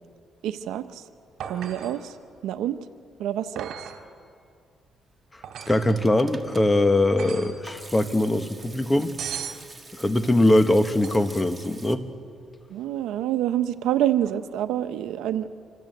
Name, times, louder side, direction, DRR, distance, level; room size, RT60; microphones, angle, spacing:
voice 1, 0.4-1.0 1.5-2.1 2.4-2.8 3.2-3.7 12.7-15.5, right 11 dB, 85° right, 11 dB, 0.9 m, -27 dB
sound 1, 1.4-2.0 3.6-4.0 5.4-5.9 7.1-7.6 9.2-9.6 11.0-11.4 14.2-14.3, right 8 dB, 70° right, 2.7 m, -37 dB
voice 2, 5.3-9.1 10.0-12.1, left 1 dB, 15° left, 9 dB, 1.4 m, -22 dB
Hands / Sink (filling or washing), 5.3-12.0, right 2 dB, 20° right, 1.8 m, -46 dB
27.0 x 23.5 x 8.0 m, 2.4 s
cardioid pair, 90°, 0 cm